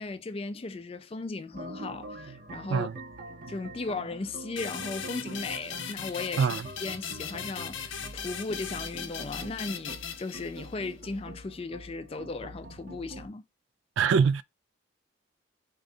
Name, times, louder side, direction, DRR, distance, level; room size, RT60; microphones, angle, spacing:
voice 1, 0.0-2.9 3.5-6.5 6.8-13.4, left 3 dB, 30° left, 0.3 m, -36 dB
sound 1, 1.5-13.3, right 1 dB, 45° right, 0.7 m, -45 dB
sound 2, 4.6-10.9, left 7 dB, 75° left, 0.6 m, -39 dB
voice 2, 14.0-14.4, right 6 dB, 75° right, 0.3 m, -23 dB
3.7 x 2.6 x 3.3 m
head